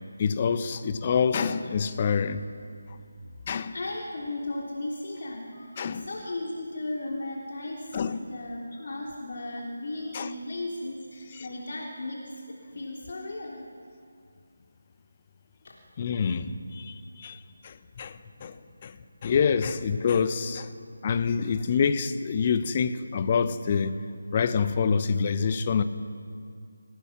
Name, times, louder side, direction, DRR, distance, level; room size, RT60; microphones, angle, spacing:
voice 1, 0.2-2.4 3.5-3.7 5.8-6.0 7.9-8.2 10.1-10.3 11.4-11.5 16.0-18.6 18.8-19.0 19.2-20.7 21.0-23.9 24.3-25.8, left 6 dB, 30° left, 12 dB, 1.0 m, -26 dB
voice 2, 3.7-13.7 15.6-15.7, left 2 dB, 45° left, -2 dB, 3.2 m, -36 dB
27.0 x 17.5 x 6.1 m, 2.3 s
figure-of-eight pair, 160°, 0 cm